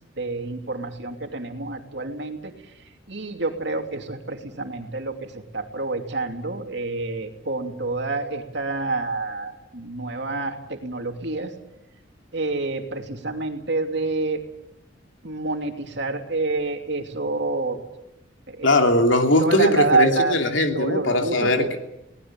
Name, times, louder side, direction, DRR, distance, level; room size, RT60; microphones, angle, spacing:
voice 1, 0.2-2.5 3.1-11.5 12.3-14.4 15.2-17.8 18.5-18.7 19.4-20.4 20.7-21.8, right 3 dB, 60° right, 4 dB, 2.8 m, -27 dB
voice 2, 18.6-21.8, left 1 dB, 75° left, 4 dB, 2.9 m, -20 dB
22.0 x 19.0 x 8.9 m, 0.89 s
head